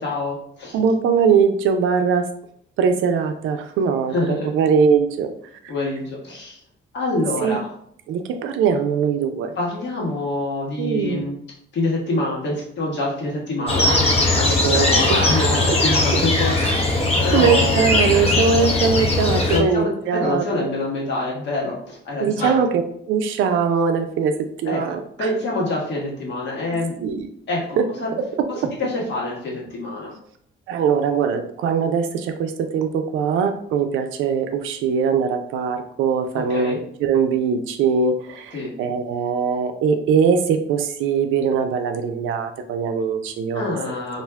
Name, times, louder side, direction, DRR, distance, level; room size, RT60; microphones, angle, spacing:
voice 1, 0.0-0.8 4.1-4.5 5.7-6.6 6.9-7.7 9.6-11.4 11.7-17.8 19.5-22.6 24.6-24.8 25.2-27.0 27.5-28.1 28.8-30.1 36.3-36.8 38.5-38.7 43.5-44.2, left 2 dB, 65° left, -3 dB, 1.2 m, -26 dB
voice 2, 0.7-2.3 2.8-4.1 4.5-5.3 7.4-7.6 8.1-9.5 10.8-11.2 14.6-15.5 16.6-16.8 17.3-20.7 22.2-22.8 23.1-25.3 27.0-27.3 27.8-27.9 30.7-36.7 37.0-43.6, right 6 dB, 85° right, 7 dB, 0.4 m, -21 dB
sound 1, 13.7-19.6, left 2 dB, 30° left, 0.7 m, -19 dB
2.5 x 2.1 x 3.4 m, 0.67 s
cardioid pair, 90°, 20 cm